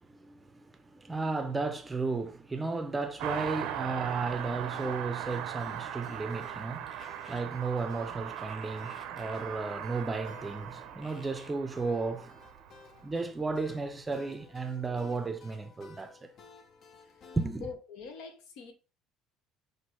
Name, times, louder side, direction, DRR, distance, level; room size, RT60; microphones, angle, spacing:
voice 1, 0.0-12.4 13.0-16.3 17.4-17.7, right 3 dB, 20° right, 0.5 m, -34 dB
Car passing by, 3.2-13.2 13.4-13.5, right 10 dB, 70° right, 0.6 m, -39 dB
sound 1, 4.7-17.5, left 5 dB, 50° left, 0.6 m, -55 dB
sound 2, 6.9-7.4 8.3-9.4 11.0-11.5, left 2 dB, 30° left, 1.2 m, -55 dB
voice 2, 17.6-18.7, left 5 dB, 75° left, 1.0 m, -43 dB
5.9 x 2.6 x 3.0 m
supercardioid pair, 95°, 0 cm